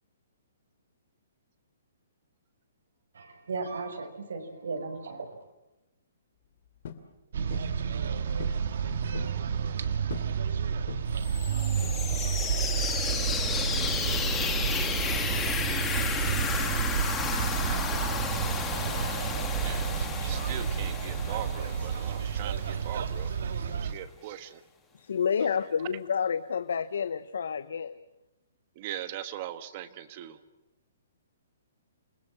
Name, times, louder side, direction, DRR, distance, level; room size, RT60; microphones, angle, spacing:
voice 1, 3.1-5.5, right 4 dB, 85° right, 4 dB, 5.7 m, -36 dB
sound 1, 6.8-7.1 7.5-7.8 8.4-8.7 8.9-9.4 10.1-10.4 10.9-11.2 11.8-12.3, left 7 dB, 50° left, 2.6 m, -42 dB
sound 2, 7.3-23.9, right 7 dB, 60° right, 1.8 m, -30 dB
voice 2, 8.1-10.8 19.6-23.3 23.7-24.6 28.8-30.4, right 12 dB, 30° right, 12 dB, 1.3 m, -41 dB
sound 3, 11.2-22.9, left 6 dB, 10° left, 1.9 m, -33 dB
voice 3, 24.9-28.0, left 7 dB, 75° left, 13 dB, 0.9 m, -29 dB
28.5 x 21.0 x 7.6 m, 0.97 s
hypercardioid pair, 170°, 0 cm